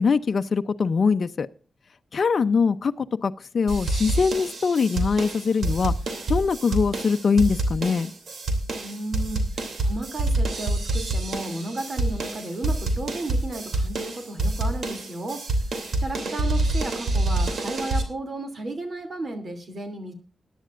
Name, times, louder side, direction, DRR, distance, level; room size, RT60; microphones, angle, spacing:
voice 1, 0.0-1.5 2.1-5.9 6.3-8.1, left 5 dB, 55° left, 9 dB, 0.6 m, -22 dB
sound 1, 3.7-18.0, right 2 dB, 70° right, 2.8 m, -27 dB
voice 2, 8.8-15.7 16.0-20.1, right 2 dB, 45° right, 7 dB, 2.8 m, -34 dB
21.5 x 10.5 x 2.5 m, 0.39 s
wide cardioid pair, 115°, 0 cm